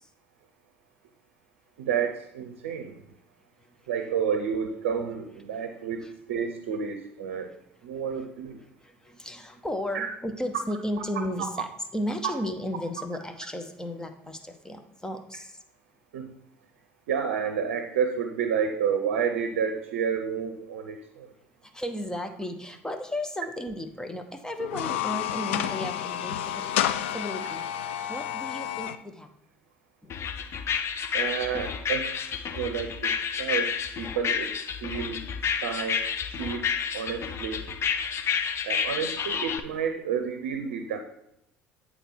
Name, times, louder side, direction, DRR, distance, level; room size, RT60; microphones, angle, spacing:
voice 1, 1.8-3.0 3.9-7.5 7.8-8.6 9.9-10.1 11.4-11.5 16.1-16.3 17.1-21.3 31.1-34.5 34.8-35.2 35.6-36.7 36.9-37.6 38.6-41.0, right 7 dB, 70° right, 7 dB, 0.6 m, -30 dB
voice 2, 8.8-15.5 21.7-26.8 27.1-27.6 28.1-29.3, left 1 dB, 10° left, 6 dB, 0.9 m, -34 dB
sound 1, 24.6-29.0, left 11 dB, 75° left, 0.4 m, -30 dB
sound 2, 30.1-39.6, left 7 dB, 40° left, 0.7 m, -30 dB
9.0 x 4.1 x 4.5 m, 0.81 s
hypercardioid pair, 65°, 7 cm